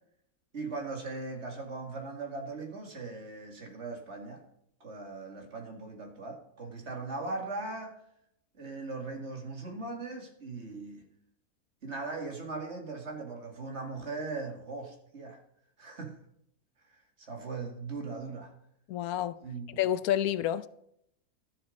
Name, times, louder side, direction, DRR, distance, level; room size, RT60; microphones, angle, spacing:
voice 1, 0.5-4.4 4.8-8.0 8.5-11.1 11.8-15.4 15.8-16.2 16.9-18.5 19.4-19.8, right 3 dB, 50° right, 2.4 m, -39 dB
voice 2, 18.9-19.4 19.8-20.7, left 11 dB, 80° left, 1.1 m, -29 dB
12.5 x 7.4 x 5.2 m
omnidirectional pair, 1.5 m